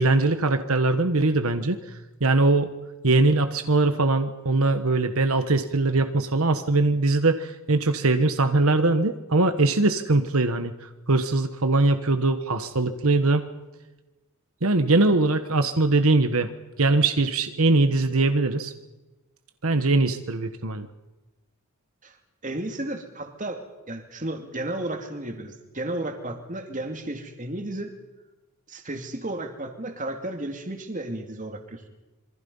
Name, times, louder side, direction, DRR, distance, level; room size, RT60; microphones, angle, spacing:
voice 1, 0.0-2.7 3.0-13.4 14.6-16.5 16.8-18.7 19.6-20.9, right 2 dB, 75° right, 9 dB, 1.3 m, -22 dB
voice 2, 22.4-23.6 23.9-27.9 28.7-31.9, right 1 dB, 35° right, 5 dB, 2.6 m, -33 dB
27.0 x 24.0 x 5.6 m, 1.1 s
head